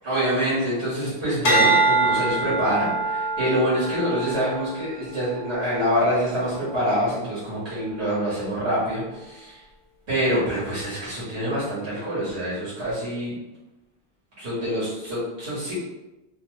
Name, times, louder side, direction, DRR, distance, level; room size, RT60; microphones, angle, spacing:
voice 1, 0.0-9.6 10.1-13.4 14.4-15.7, equal, 90° right, -10 dB, 1.4 m, -25 dB
sound 1, 1.4-5.9 6.5-6.9, right 3 dB, 60° left, 0.8 m, -24 dB
2.8 x 2.1 x 3.1 m, 1.0 s
omnidirectional pair, 1.1 m